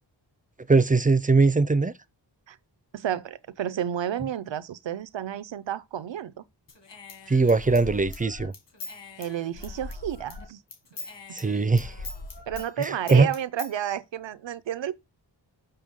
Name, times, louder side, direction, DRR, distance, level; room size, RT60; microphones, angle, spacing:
voice 1, 0.7-1.9 7.3-8.5 11.3-11.9 12.8-13.3, right 3 dB, 20° right, 0.4 m, -21 dB
voice 2, 2.9-6.4 9.2-10.6 11.3-11.4 12.5-14.9, right 10 dB, 85° right, 0.7 m, -31 dB
Human voice / Scissors, 6.7-10.4 10.7-13.7, left 3 dB, 75° left, 2.2 m, -41 dB
6.9 x 6.1 x 3.6 m
wide cardioid pair, 140°, 43 cm